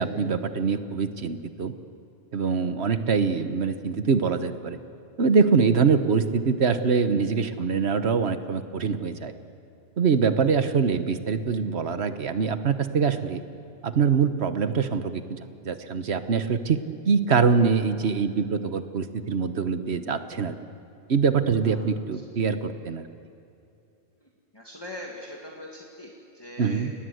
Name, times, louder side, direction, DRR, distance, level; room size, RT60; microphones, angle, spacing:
voice 1, 0.0-1.7 2.3-4.8 5.2-9.3 10.0-13.4 13.8-15.4 15.6-16.8 17.1-20.5 21.1-23.0 26.6-26.9, right 5 dB, 65° right, 10 dB, 1.4 m, -24 dB
voice 2, 24.5-26.9, left 1 dB, 20° left, -2 dB, 2.1 m, -41 dB
29.5 x 19.0 x 8.0 m, 2.7 s
omnidirectional pair, 1.2 m